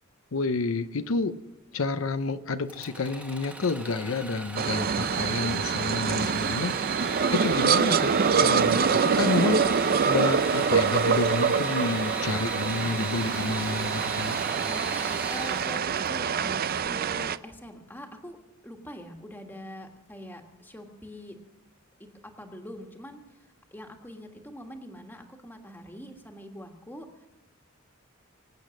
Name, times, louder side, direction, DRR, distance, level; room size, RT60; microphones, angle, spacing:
voice 1, 0.3-1.4 1.7-6.7 7.3-14.4, left 3 dB, 80° left, 10 dB, 0.7 m, -30 dB
Engine / Sawing, 2.7-16.4, right 1 dB, 5° right, 1.2 m, -38 dB
sound 1, 4.5-17.4, right 6 dB, 45° right, 0.5 m, -25 dB
voice 2, 15.3-15.8 16.1-18.4 18.6-21.4 22.0-27.3, equal, 10° left, 4 dB, 1.6 m, -44 dB
24.5 x 8.5 x 6.4 m, 0.97 s
head